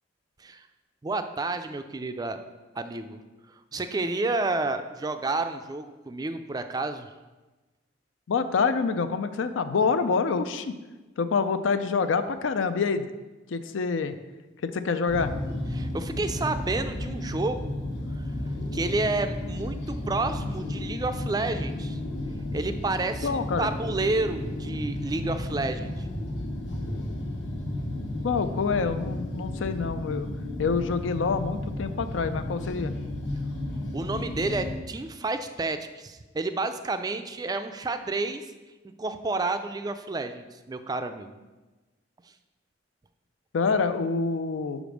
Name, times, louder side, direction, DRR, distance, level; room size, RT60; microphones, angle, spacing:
voice 1, 1.0-2.4 2.8-3.2 3.7-7.1 15.7-17.7 18.7-22.0 22.5-26.1 33.9-38.4 39.0-41.4, right 3 dB, 20° right, 9 dB, 0.3 m, -30 dB
voice 2, 8.3-10.8 11.2-13.1 13.5-14.2 14.6-15.3 23.2-23.7 28.2-30.3 30.6-32.9 43.5-44.8, left 5 dB, 85° left, 10 dB, 0.4 m, -26 dB
sound 1, 15.1-34.8, left 1 dB, 65° left, 1.2 m, -33 dB
5.1 x 5.0 x 6.2 m, 1.2 s
head